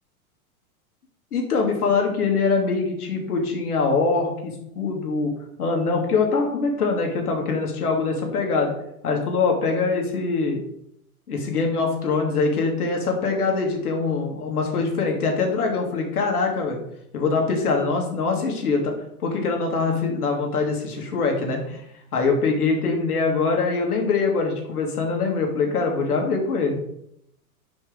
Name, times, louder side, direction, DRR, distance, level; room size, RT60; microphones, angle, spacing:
voice 1, 1.3-5.3 5.6-8.7 9.0-10.6 11.3-16.8 17.1-18.9 19.2-21.8 22.1-26.8, left 4 dB, 85° left, 2 dB, 2.1 m, -23 dB
5.2 x 5.2 x 5.0 m, 0.74 s
hypercardioid pair, 125°, 43 cm